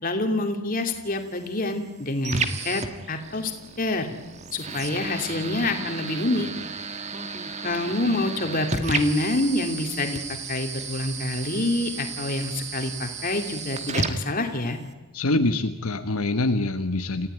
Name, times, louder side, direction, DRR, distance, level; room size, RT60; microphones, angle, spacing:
voice 1, 0.0-2.8 3.1-3.5 3.8-4.1 4.5-6.5 7.6-10.2 10.5-14.8, left 2 dB, 40° left, 5 dB, 2.8 m, -26 dB
sound 1, 0.9-14.9, right 4 dB, 30° right, 1.6 m, -34 dB
voice 2, 15.1-17.3, left 2 dB, 75° left, 7 dB, 1.3 m, -24 dB
28.5 x 15.5 x 9.4 m, 1.2 s
head